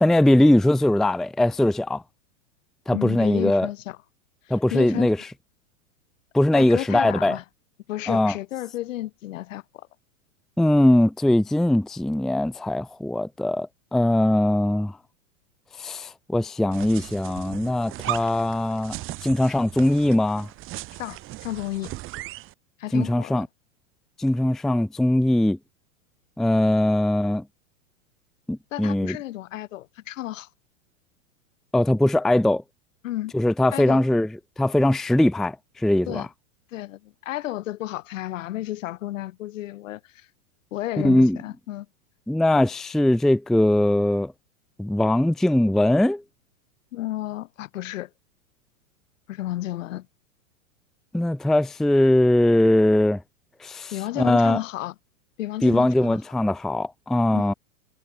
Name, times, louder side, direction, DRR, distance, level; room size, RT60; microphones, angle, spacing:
voice 1, 0.0-2.0 2.9-3.7 4.5-5.2 6.3-7.4 8.1-8.4 10.6-14.9 15.8-20.5 22.9-23.5 24.2-25.6 26.4-27.4 28.5-29.2 31.7-32.6 33.3-34.3 34.6-36.3 41.0-41.4 42.3-44.3 44.8-46.2 51.1-53.2 53.6-53.9 54.2-54.6 55.6-57.5, left 1 dB, ahead, 0.6 m, -21 dB
voice 2, 2.9-4.0 4.5-5.1 6.5-7.4 7.9-9.9 21.0-22.0 22.8-23.4 28.7-30.5 33.0-33.3 33.7-34.0 36.1-36.3 36.7-40.3 40.7-41.9 46.9-48.1 49.3-50.1 53.9-54.9 55.4-56.2 57.3-57.5, left 15 dB, 65° left, 4.4 m, -32 dB
sound 1, 16.7-22.5, right 17 dB, 30° right, 1.9 m, -37 dB
supercardioid pair, 140°, 41 cm